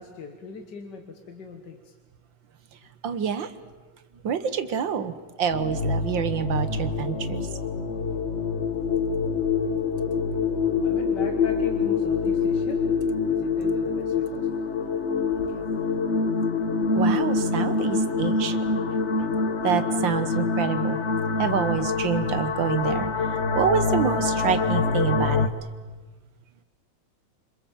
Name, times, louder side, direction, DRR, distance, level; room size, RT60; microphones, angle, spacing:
voice 1, 0.0-1.9 10.8-12.8 13.3-14.6, left 4 dB, 55° left, 4 dB, 2.1 m, -40 dB
voice 2, 3.0-3.5 4.2-5.1 5.4-7.5 17.0-18.6 19.6-21.0 21.4-23.1 23.6-25.5, right 7 dB, 65° right, 11 dB, 1.9 m, -27 dB
sound 1, 5.5-25.5, left 4 dB, 40° left, 1.2 m, -25 dB
27.5 x 25.5 x 7.5 m, 1.3 s
omnidirectional pair, 2.3 m